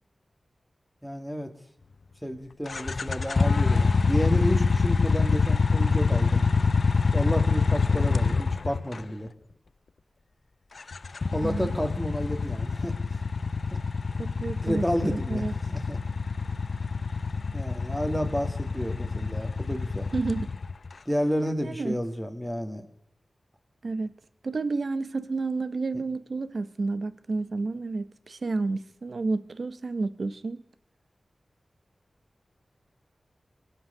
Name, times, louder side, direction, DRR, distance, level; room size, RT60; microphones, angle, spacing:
voice 1, 1.0-1.5 2.2-6.4 7.1-9.3 11.3-12.9 13.7-13.8 14.6-16.0 17.5-20.1 21.1-22.9, equal, ahead, 2.1 m, -31 dB
sound 1, 2.7-9.1 10.8-20.9, left 4 dB, 65° left, 0.5 m, -25 dB
voice 2, 14.2-15.5 20.1-20.5 21.6-22.0 23.8-24.1 24.4-30.6, right 3 dB, 65° right, 0.9 m, -30 dB
22.5 x 7.7 x 6.7 m
wide cardioid pair, 65°, 0 cm